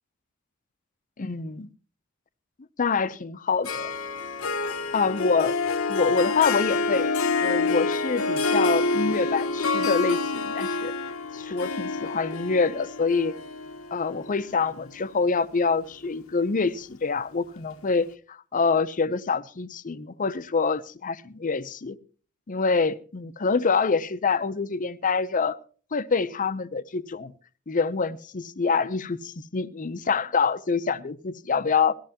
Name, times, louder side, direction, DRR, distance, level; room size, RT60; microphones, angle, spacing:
voice 1, 1.2-1.7 2.8-3.9 4.9-5.6 5.9-7.1 7.4-10.9 11.3-13.4 13.9-22.0 22.5-25.6 25.9-27.3 27.7-31.9, left 4 dB, 40° left, 0.6 m, -26 dB
Harp, 3.6-15.1, left 3 dB, 80° left, 0.9 m, -27 dB
18.0 x 14.0 x 2.8 m
head